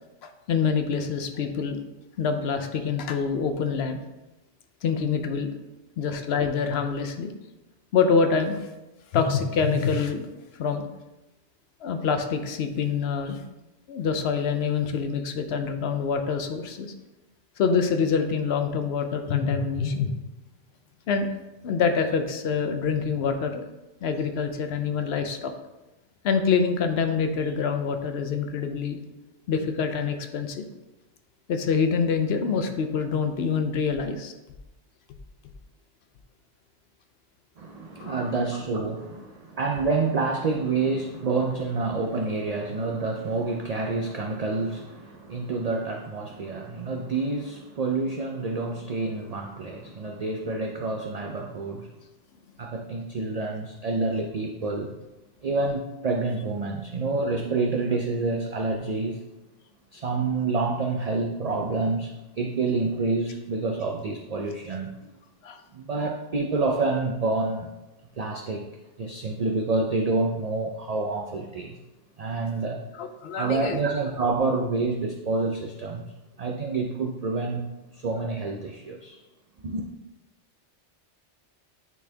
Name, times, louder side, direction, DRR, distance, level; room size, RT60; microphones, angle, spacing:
voice 1, 0.2-1.8 2.2-4.0 4.8-5.5 6.0-7.3 7.9-8.6 9.1-10.3 10.6-10.9 11.8-13.4 13.9-16.9 17.6-20.1 21.1-21.3 21.6-23.6 24.0-25.5 26.2-29.0 29.5-30.6 31.5-34.3 38.0-38.3 65.4-65.6 72.9-73.8, left 5 dB, 65° left, 7 dB, 0.8 m, -26 dB
voice 2, 37.6-51.9 52.6-54.9 55.4-59.2 59.9-64.9 65.7-67.7 68.2-68.7 69.0-71.8 72.2-72.8 73.4-76.0 76.4-77.6 77.9-79.2 79.6-79.8, right 3 dB, 55° right, 2 dB, 0.4 m, -28 dB
9.2 x 4.1 x 2.8 m, 1.0 s
omnidirectional pair, 1.2 m